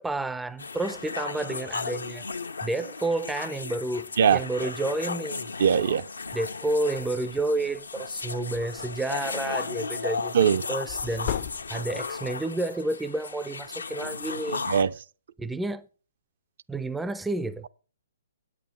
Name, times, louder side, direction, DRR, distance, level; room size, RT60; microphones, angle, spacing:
voice 1, 0.0-2.3 2.6-4.1 4.3-5.5 6.3-11.3 11.7-14.6 15.4-15.9 16.7-17.7, right 2 dB, 5° right, 0.5 m, -30 dB
sound 1, 0.6-14.8, left 4 dB, 85° left, 1.0 m, -35 dB
voice 2, 4.2-4.7 5.6-6.1 10.3-10.6 14.7-14.9, right 7 dB, 60° right, 0.6 m, -21 dB
sound 2, 7.7-7.8 8.1-9.2 10.9-12.1, left 12 dB, 45° left, 0.6 m, -36 dB
8.7 x 8.5 x 7.4 m
hypercardioid pair, 135°, 0 cm